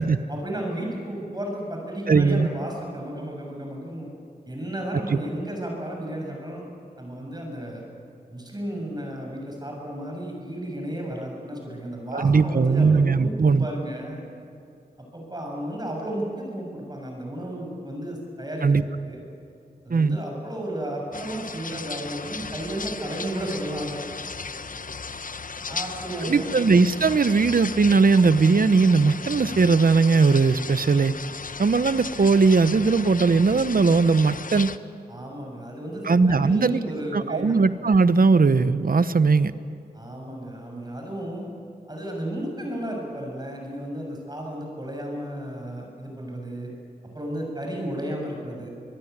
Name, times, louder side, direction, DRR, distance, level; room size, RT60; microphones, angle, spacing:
voice 1, 0.3-4.1 4.5-6.6 7.0-7.8 8.3-14.2 15.1-19.2 19.8-24.0 25.7-26.5 35.1-37.5 39.9-41.5 41.9-46.7 47.1-48.7, right 1 dB, 25° right, 0 dB, 7.6 m, -33 dB
voice 2, 2.1-2.5 5.1-5.2 12.1-13.7 18.6-18.8 19.9-20.2 26.2-31.1 31.6-34.7 36.0-36.8 37.1-39.5, right 4 dB, 55° right, 13 dB, 1.0 m, -19 dB
sound 1, 21.1-34.8, left 4 dB, 55° left, 0.9 m, -36 dB
25.0 x 21.5 x 9.7 m, 2.5 s
cardioid pair, 60°, 17 cm